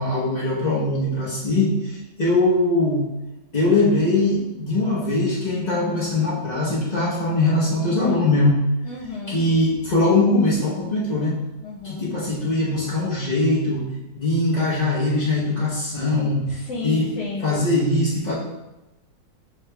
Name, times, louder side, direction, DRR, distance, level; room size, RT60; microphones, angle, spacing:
voice 1, 0.0-3.1 3.5-8.6 9.3-11.3 11.8-13.8 14.1-16.4 16.8-17.1 17.4-18.3, left 2 dB, 40° left, -7 dB, 0.7 m, -21 dB
voice 2, 8.8-9.4 11.6-12.1 16.5-17.6, left 3 dB, 70° left, -8 dB, 1.5 m, -32 dB
6.3 x 3.5 x 2.2 m, 1.0 s
omnidirectional pair, 1.9 m